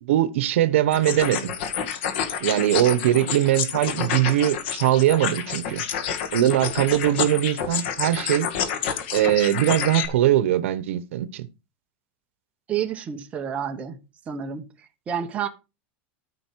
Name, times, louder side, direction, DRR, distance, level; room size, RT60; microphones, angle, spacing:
voice 1, 0.0-1.5 2.4-5.8 6.3-8.5 9.1-11.5, right 13 dB, 85° right, 1.0 m, -21 dB
sound 1, 0.9-10.1, left 8 dB, 60° left, 2.0 m, -29 dB
voice 2, 12.7-14.0 14.3-15.5, right 8 dB, 20° right, 1.2 m, -30 dB
14.0 x 5.4 x 4.7 m
supercardioid pair, 165°, 7 cm